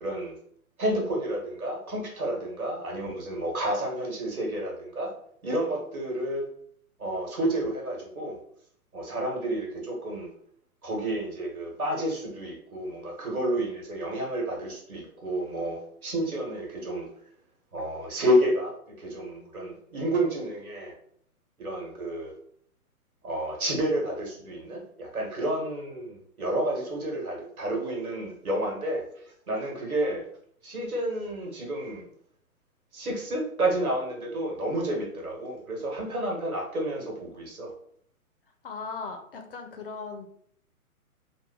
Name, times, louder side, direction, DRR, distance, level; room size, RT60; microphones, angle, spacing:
voice 1, 0.0-0.3 0.8-5.1 5.4-6.4 7.0-8.4 8.9-10.3 10.8-17.1 17.7-20.9 21.6-22.3 23.2-29.0 29.5-30.2 30.6-32.1 32.9-37.7, right 1 dB, 75° right, 0 dB, 1.5 m, -30 dB
voice 2, 38.6-40.3, left 4 dB, 40° left, 5 dB, 0.4 m, -38 dB
2.8 x 2.1 x 3.8 m, 0.64 s
figure-of-eight pair, 130°, 44 cm